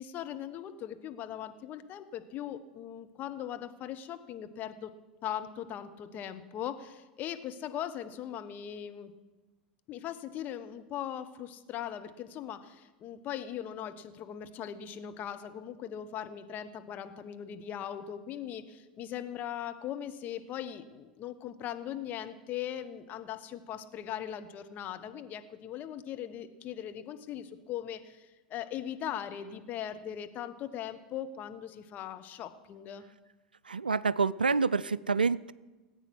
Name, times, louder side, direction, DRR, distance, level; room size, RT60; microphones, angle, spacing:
voice 1, 0.0-4.9 5.2-9.1 9.9-33.0, left 10 dB, 40° left, 8 dB, 1.2 m, -39 dB
voice 2, 33.7-35.5, right 4 dB, 85° right, 21 dB, 0.3 m, -27 dB
18.5 x 8.9 x 6.3 m, 1.2 s
figure-of-eight pair, 85°, 5 cm